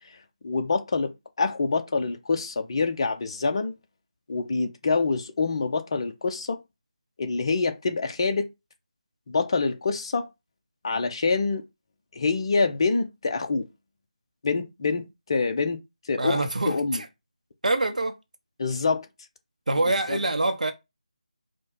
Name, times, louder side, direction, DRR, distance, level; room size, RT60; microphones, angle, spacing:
voice 1, 0.4-3.7 4.3-6.6 7.2-8.5 9.3-10.3 10.8-11.6 12.1-13.7 14.4-15.8 16.0-17.0 18.6-19.1 20.1-20.2, left 4 dB, 40° left, 0.7 m, -26 dB
voice 2, 16.2-17.1 17.6-18.2 19.7-20.7, right 2 dB, 70° right, 0.7 m, -25 dB
5.0 x 2.2 x 3.8 m
figure-of-eight pair, 160°, 4 cm